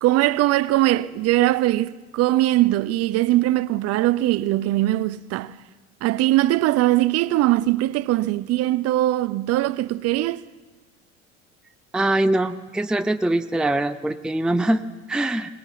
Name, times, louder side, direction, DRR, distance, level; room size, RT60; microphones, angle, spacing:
voice 1, 0.0-5.5 6.0-10.4, right 16 dB, 40° right, 0.8 m, -21 dB
voice 2, 11.9-15.5, right 1 dB, ahead, 0.7 m, -23 dB
23.5 x 19.5 x 7.2 m
figure-of-eight pair, 70°, 38 cm